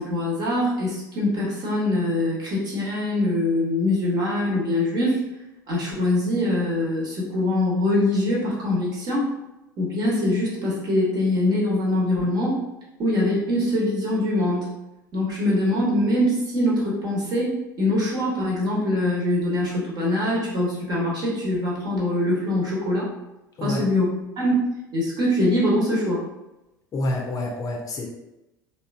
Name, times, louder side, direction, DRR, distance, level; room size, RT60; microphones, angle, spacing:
voice 1, 0.0-5.2 5.7-9.3 9.8-12.6 13.0-14.7 15.1-23.1 23.6-24.1 24.4-24.5 24.9-26.2, left 1 dB, 40° right, -4 dB, 1.3 m, -23 dB
voice 2, 26.9-28.1, left 2 dB, 30° left, 0 dB, 0.6 m, -27 dB
3.5 x 2.4 x 2.5 m, 0.94 s
figure-of-eight pair, 70°, 11 cm